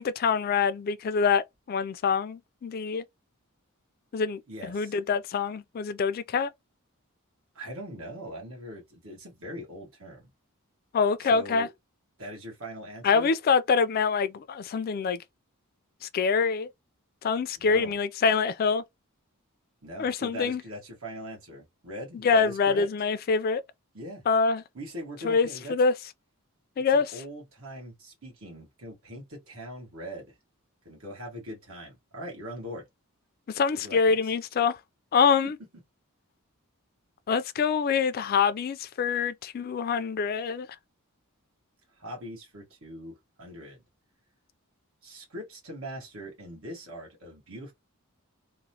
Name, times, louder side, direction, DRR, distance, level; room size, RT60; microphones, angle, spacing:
voice 1, 0.0-3.0 4.1-6.5 10.9-11.7 13.0-15.2 16.0-16.7 17.2-18.8 20.0-20.6 22.2-23.6 24.3-24.6 25.2-25.9 26.8-27.1 33.5-34.8 35.1-35.6 37.3-40.7, left 5 dB, 45° left, 0.3 m, -25 dB
voice 2, 4.5-5.0 7.5-10.3 11.2-11.7 12.2-13.3 17.6-18.0 19.8-22.9 23.9-24.2 24.7-25.7 26.9-30.3 30.8-32.9 33.7-34.1 35.4-35.5 42.0-43.8 45.0-47.7, equal, 65° right, 1.3 m, -41 dB
2.9 x 2.1 x 2.7 m
head